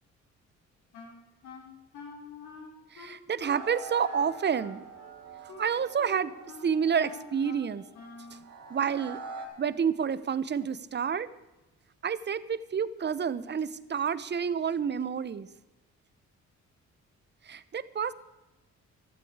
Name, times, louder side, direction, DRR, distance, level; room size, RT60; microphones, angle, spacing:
Wind instrument woodwind instrument, 0.9-8.5, left 4 dB, 85° left, 4.8 m, -48 dB
voice 1, 2.9-4.8 5.4-6.3 6.6-7.8 8.3-8.4 8.7-9.2 9.6-11.3 12.0-15.5 17.5-18.1, right 7 dB, 35° right, 16 dB, 0.8 m, -29 dB
sound 1, 3.4-9.5, right 3 dB, 85° right, 3.6 m, -45 dB
15.5 x 12.0 x 4.8 m, 1.0 s
cardioid pair, 90°, 30 cm